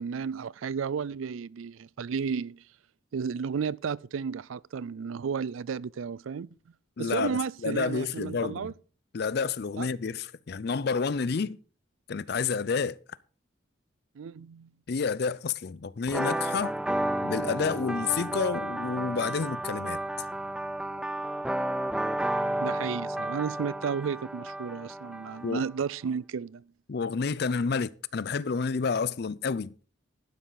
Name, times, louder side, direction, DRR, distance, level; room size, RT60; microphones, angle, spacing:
voice 1, 0.0-2.6 3.1-6.5 7.0-8.7 9.8-9.9 14.2-14.7 22.6-26.6, right 6 dB, 85° right, 0.4 m, -33 dB
voice 2, 7.0-8.7 9.1-11.6 12.1-13.0 14.9-16.8 17.2-20.0 25.4-25.6 26.9-29.7, left 5 dB, 55° left, 0.5 m, -29 dB
sound 1, 16.1-25.7, right 1 dB, 5° right, 0.4 m, -32 dB
11.5 x 10.0 x 4.0 m
head